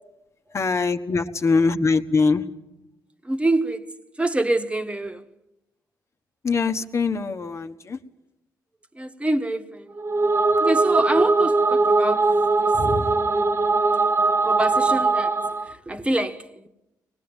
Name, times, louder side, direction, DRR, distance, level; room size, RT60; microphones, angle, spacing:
voice 1, 0.5-2.5 6.4-8.0 12.7-13.3, left 4 dB, 40° left, 1.4 m, -23 dB
voice 2, 3.2-5.3 8.9-10.0 10.6-12.7 14.4-15.4 15.7-16.7, right 2 dB, 15° right, 1.6 m, -26 dB
sound 1, 10.0-15.7, right 3 dB, 35° right, 0.9 m, -20 dB
24.0 x 20.0 x 9.1 m
cardioid pair, 75°, 7 cm